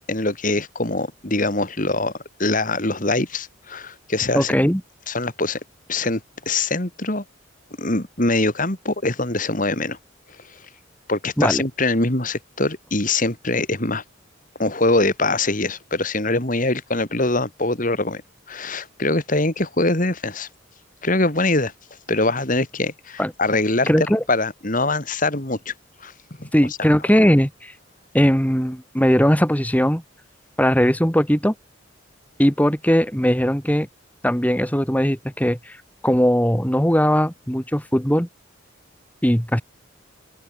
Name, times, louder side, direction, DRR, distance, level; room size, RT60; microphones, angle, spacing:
voice 1, 0.1-2.1 2.4-4.5 5.1-5.6 5.9-6.2 6.4-7.2 7.8-10.0 11.1-14.0 14.6-18.2 18.5-20.5 21.0-21.7 22.1-23.9 24.3-25.7 26.0-26.1 26.4-26.5, left 2 dB, 40° left, 3.1 m, -23 dB
voice 2, 4.3-4.8 11.4-11.6 23.2-23.3 23.9-24.2 26.5-27.7 28.1-30.0 30.6-31.5 32.4-33.9 34.2-35.8 36.0-38.3 39.2-39.6, equal, 10° left, 2.9 m, -19 dB
open air
head